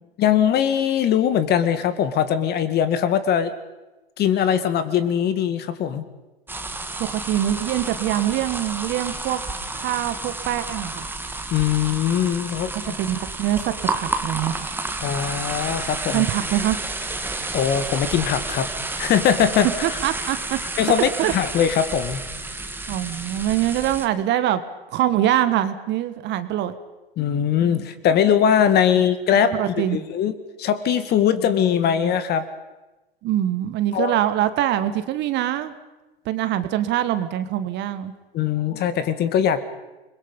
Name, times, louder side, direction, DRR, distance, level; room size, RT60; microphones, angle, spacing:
voice 1, 0.2-3.5 4.2-6.0 11.5-12.9 15.0-16.3 17.5-18.7 18.9-19.7 20.8-22.2 27.2-29.5 29.9-30.3 30.6-32.5 33.9-34.2 38.3-39.6, left 8 dB, 35° left, 12 dB, 1.9 m, -21 dB
sound 1, 6.5-24.1, right 2 dB, 5° right, 1.8 m, -31 dB
voice 2, 7.0-9.4 9.7-11.1 12.7-14.7 16.1-16.8 19.8-20.6 21.2-21.3 22.9-24.6 24.9-26.7 29.5-30.1 33.2-35.7 36.2-38.1, right 12 dB, 40° right, 12 dB, 1.5 m, -24 dB
29.5 x 22.0 x 5.4 m, 1.1 s
hypercardioid pair, 105°, 29 cm